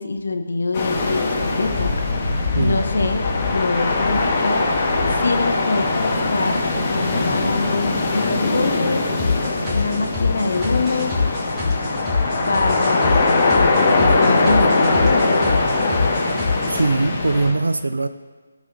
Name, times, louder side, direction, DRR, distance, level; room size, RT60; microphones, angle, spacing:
voice 1, 0.0-1.9 2.5-6.6 6.9-9.0 9.7-11.2 12.5-13.5 14.0-15.6, left 3 dB, 65° left, 5 dB, 1.0 m, -24 dB
sound 1, 0.7-17.5, left 3 dB, 30° left, 1.6 m, -21 dB
sound 2, 9.2-16.8, left 4 dB, 15° right, 2.4 m, -25 dB
voice 2, 16.7-18.1, right 3 dB, 75° right, 11 dB, 0.4 m, -21 dB
15.5 x 6.3 x 2.7 m, 1.4 s
figure-of-eight pair, 150°, 0 cm